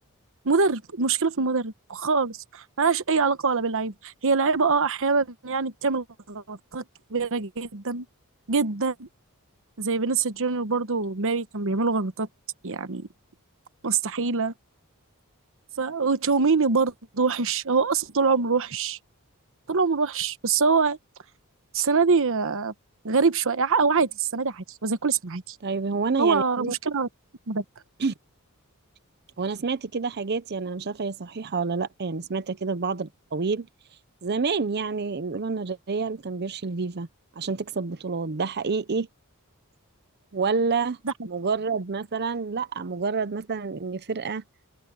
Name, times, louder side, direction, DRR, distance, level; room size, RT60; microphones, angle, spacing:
voice 1, 0.4-6.8 7.1-8.1 8.5-9.1 9.8-12.3 12.6-13.1 13.8-14.5 15.8-19.0 19.7-21.0 21.7-22.7 23.0-25.6 26.2-27.1 27.5-27.6 41.0-41.1, right 4 dB, 65° right, 1.1 m, -24 dB
voice 2, 25.6-26.7 28.0-28.1 29.4-33.7 34.2-37.1 37.4-39.1 40.3-41.0 41.3-44.4, right 4 dB, 50° right, 0.7 m, -28 dB
open air
head